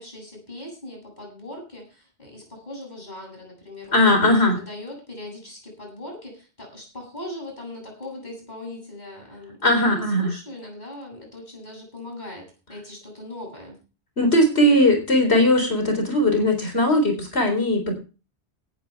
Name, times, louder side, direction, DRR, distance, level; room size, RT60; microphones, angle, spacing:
voice 1, 0.0-13.8, left 1 dB, 40° left, 0 dB, 8.2 m, -39 dB
voice 2, 3.9-4.6 9.6-10.3 14.2-17.9, left 1 dB, 70° left, 5 dB, 4.2 m, -19 dB
18.5 x 11.0 x 3.5 m, 0.33 s
omnidirectional pair, 1.1 m